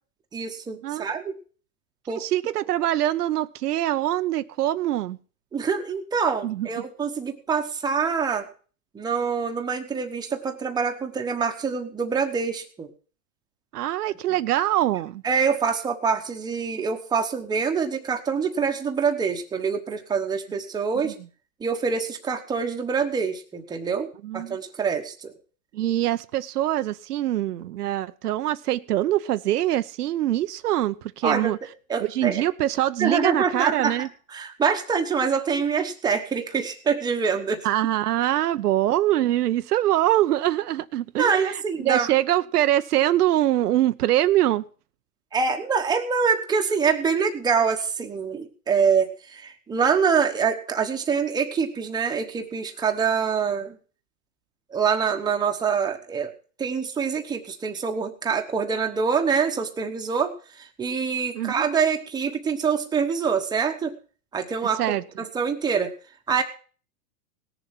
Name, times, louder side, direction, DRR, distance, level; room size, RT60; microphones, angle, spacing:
voice 1, 0.3-1.4 2.1-2.6 5.5-8.5 8.9-12.9 15.2-21.1 21.6-25.3 31.2-31.5 31.9-32.4 33.0-37.7 41.2-42.1 45.3-53.8 54.7-56.3 56.6-60.3 60.6-64.0 64.3-65.9 66.3-66.4, right 6 dB, 10° right, 1.1 m, -25 dB
voice 2, 0.8-1.2 2.1-5.2 6.4-6.7 13.7-15.2 21.0-21.1 24.2-24.6 25.7-31.6 32.1-34.1 37.6-44.6 61.3-61.6 64.8-65.0, right 13 dB, 85° right, 0.8 m, -24 dB
18.0 x 7.1 x 5.8 m
supercardioid pair, 145°, 45 cm